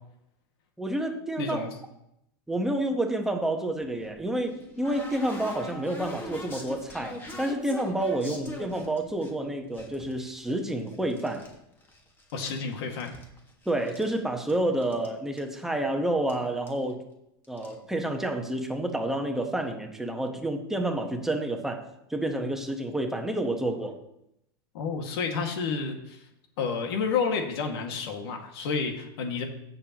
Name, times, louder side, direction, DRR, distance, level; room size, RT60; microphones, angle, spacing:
voice 1, 0.8-1.6 2.5-11.4 13.6-17.0 17.5-21.8 22.1-24.0, right 1 dB, 5° right, 3 dB, 1.3 m, -29 dB
voice 2, 1.4-1.7 12.3-13.1 24.7-26.2 26.6-29.4, left 5 dB, 70° left, 3 dB, 2.1 m, -30 dB
sound 1, 3.8-9.3 9.7-11.5 11.8-12.6 12.8-14.2 14.5-14.6 14.8-15.1 15.4-15.5 16.3-16.4 16.7-16.9 17.4-17.7, left 1 dB, 15° left, 1.9 m, -41 dB
16.0 x 6.8 x 3.1 m, 0.81 s
supercardioid pair, 135°, 13 cm